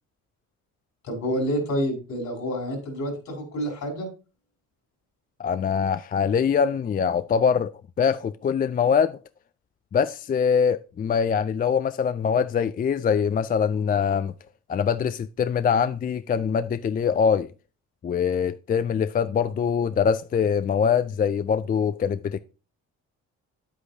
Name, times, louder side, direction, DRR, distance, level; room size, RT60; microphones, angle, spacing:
voice 1, 1.0-4.1, equal, 70° left, 4.6 m, -28 dB
voice 2, 5.4-7.7 8.0-9.2 9.9-14.3 14.7-17.5 18.0-22.4, left 7 dB, 30° left, 0.4 m, -23 dB
9.6 x 8.2 x 2.7 m
cardioid pair, 90°, 30 cm